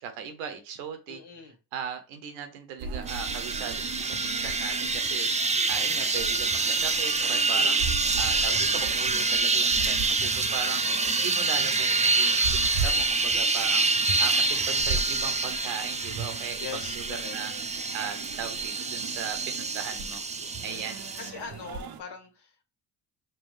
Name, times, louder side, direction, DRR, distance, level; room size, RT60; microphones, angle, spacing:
voice 1, 0.0-1.2 1.7-7.9 8.2-10.8 11.2-13.9 14.2-17.5 17.9-20.2 20.6-21.0, right 7 dB, 80° right, 7 dB, 0.9 m, -38 dB
voice 2, 1.1-1.6 8.0-8.6 10.8-11.2 16.6-17.4 20.6-22.7, left 6 dB, 55° left, 3 dB, 1.5 m, -42 dB
sound 1, 2.8-22.0, right 5 dB, 45° right, 0.7 m, -38 dB
sound 2, 3.1-21.3, right 3 dB, 15° right, 0.4 m, -26 dB
5.6 x 2.2 x 3.2 m, 0.32 s
hypercardioid pair, 45°, 50 cm